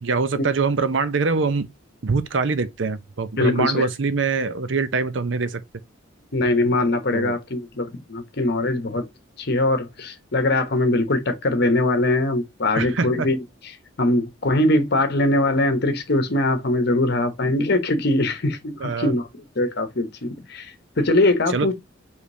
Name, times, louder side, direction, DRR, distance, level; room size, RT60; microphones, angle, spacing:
voice 1, 0.0-1.7 2.0-5.6 7.1-7.3 12.7-13.3 18.8-19.1 21.5-21.7, right 4 dB, 65° right, 0.6 m, -24 dB
voice 2, 3.4-3.9 6.3-9.1 9.4-13.4 14.0-19.3 19.6-21.7, left 2 dB, 55° left, 0.9 m, -22 dB
5.1 x 3.3 x 2.7 m
head